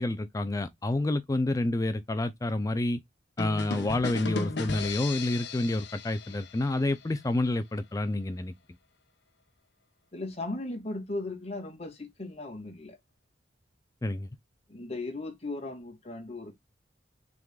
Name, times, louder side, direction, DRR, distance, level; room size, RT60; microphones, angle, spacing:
voice 1, 0.0-3.0 3.4-8.5 14.0-14.3, left 2 dB, 20° left, 0.4 m, -29 dB
sound 1, 3.4-7.1, left 3 dB, 70° left, 0.9 m, -36 dB
voice 2, 10.1-13.0 14.7-16.5, left 2 dB, 35° left, 2.2 m, -37 dB
5.8 x 3.7 x 2.3 m
head